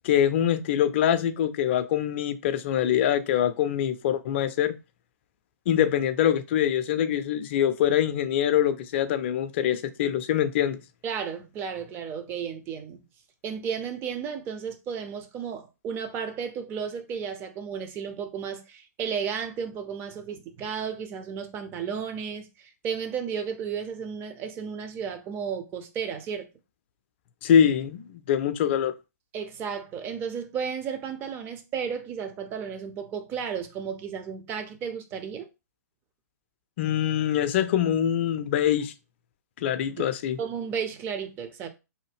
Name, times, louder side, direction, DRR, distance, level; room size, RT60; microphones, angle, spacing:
voice 1, 0.0-4.7 5.7-10.8 27.4-28.9 36.8-38.9 39.6-40.4, left 10 dB, 40° left, 0.4 m, -24 dB
voice 2, 11.0-13.0 13.4-26.5 29.3-35.5 40.0-40.1 40.4-41.7, right 7 dB, 25° right, 0.5 m, -33 dB
2.7 x 2.1 x 3.4 m
figure-of-eight pair, 115°, 9 cm